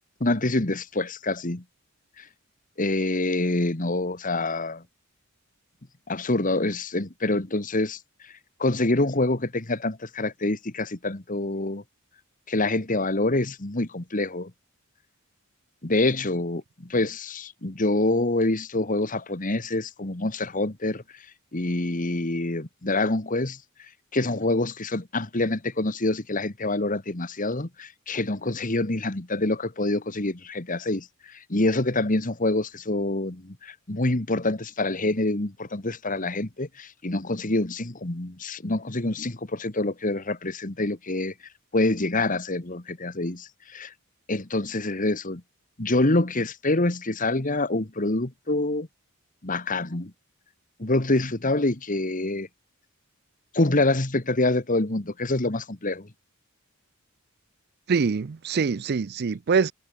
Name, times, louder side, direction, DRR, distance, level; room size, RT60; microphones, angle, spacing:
voice 1, 0.2-1.6 2.2-2.3 2.8-4.8 6.1-8.3 8.6-11.8 12.5-14.5 15.8-21.2 21.5-41.3 41.7-43.9 44.3-45.4 45.8-48.9 49.4-50.1 50.8-52.5 53.5-56.1, left 2 dB, 35° left, 1.6 m, -26 dB
voice 2, 57.9-59.7, right 5 dB, 45° right, 0.4 m, -24 dB
head